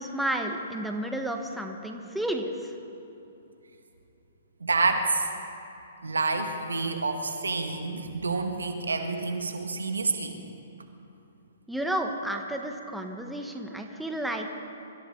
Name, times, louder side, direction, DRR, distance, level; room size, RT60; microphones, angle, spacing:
voice 1, 0.0-2.7 11.7-14.5, right 1 dB, ahead, 3 dB, 1.3 m, -31 dB
voice 2, 4.6-5.3 6.0-10.4, right 3 dB, 85° right, 5 dB, 1.7 m, -28 dB
24.5 x 14.5 x 4.0 m, 2.9 s
hypercardioid pair, 125°, 0 cm